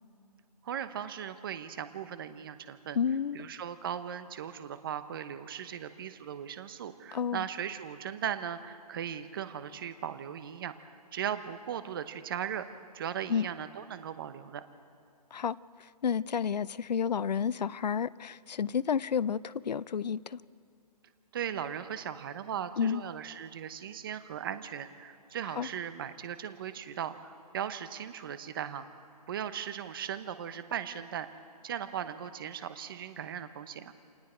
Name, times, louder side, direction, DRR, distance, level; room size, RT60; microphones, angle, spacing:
voice 1, 0.6-3.0 3.3-14.6 21.3-29.0 29.3-31.3 31.6-33.9, right 9 dB, 35° right, 11 dB, 1.1 m, -38 dB
voice 2, 2.9-3.5 7.1-7.5 13.3-13.5 15.3-20.4 22.8-23.0 25.6-25.7, left 7 dB, 85° left, 20 dB, 0.6 m, -31 dB
29.0 x 25.5 x 4.5 m, 2.7 s
hypercardioid pair, 165°, 21 cm